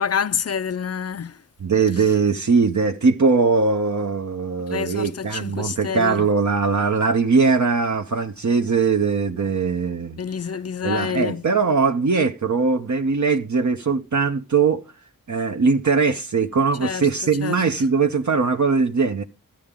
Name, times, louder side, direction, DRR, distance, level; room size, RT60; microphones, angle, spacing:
voice 1, 0.0-1.4 4.7-6.3 10.2-11.4 16.8-17.6, left 7 dB, 45° left, 0.5 m, -28 dB
voice 2, 1.6-10.2 10.8-14.8 15.3-19.2, right 4 dB, 55° right, 0.8 m, -20 dB
12.5 x 8.5 x 3.7 m
cardioid pair, 45°, 34 cm